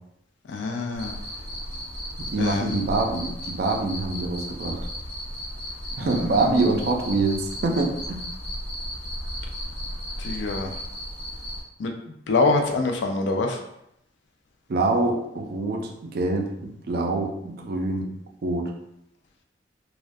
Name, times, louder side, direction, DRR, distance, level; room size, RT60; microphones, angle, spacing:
voice 1, 0.5-1.2 2.4-2.8 6.0-6.7 10.2-10.8 11.8-11.9 12.3-13.6, left 3 dB, 85° left, 3 dB, 0.4 m, -25 dB
Cricket, 0.9-11.6, equal, 35° left, 0.7 m, -35 dB
voice 2, 2.2-4.8 6.0-8.2 14.7-18.1 18.4-18.7, right 3 dB, 55° right, 2 dB, 0.4 m, -25 dB
2.2 x 2.1 x 2.5 m, 0.79 s
head